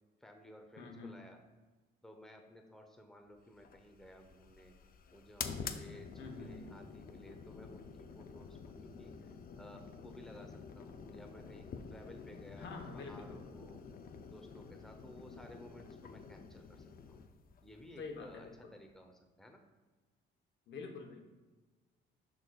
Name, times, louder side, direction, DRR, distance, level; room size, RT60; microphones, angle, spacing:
voice 1, 0.2-1.4 2.0-4.7 5.1-13.8 14.3-17.2 17.6-19.6, equal, ahead, 3 dB, 0.8 m, -56 dB
voice 2, 0.8-1.2 6.2-6.6 12.6-13.4 18.0-18.7 20.7-21.2, left 4 dB, 65° left, 3 dB, 1.1 m, -47 dB
sound 1, 3.5-18.8, left 6 dB, 45° left, 0.6 m, -49 dB
11.0 x 3.9 x 2.4 m, 1.3 s
cardioid pair, 90°, 20 cm